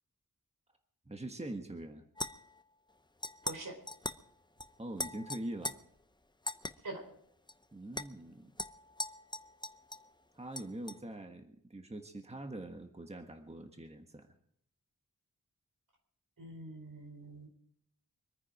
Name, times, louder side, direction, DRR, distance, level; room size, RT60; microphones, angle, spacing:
voice 1, 1.1-2.0 4.8-5.7 7.7-8.5 10.3-14.3, right 1 dB, 20° right, 5 dB, 1.5 m, -43 dB
sound 1, 2.2-2.6 3.2-3.6 3.9-4.2 4.6-4.7 5.0-5.7 6.5-6.7 7.5-7.6 7.9-8.1 8.6-10.1 10.5-11.0, left 2 dB, 15° left, 0.7 m, -40 dB
voice 2, 3.4-3.8 6.8-7.1 16.4-17.5, right 2 dB, 75° right, 3 dB, 4.5 m, -44 dB
24.5 x 9.8 x 4.9 m, 0.68 s
wide cardioid pair, 80°, 32 cm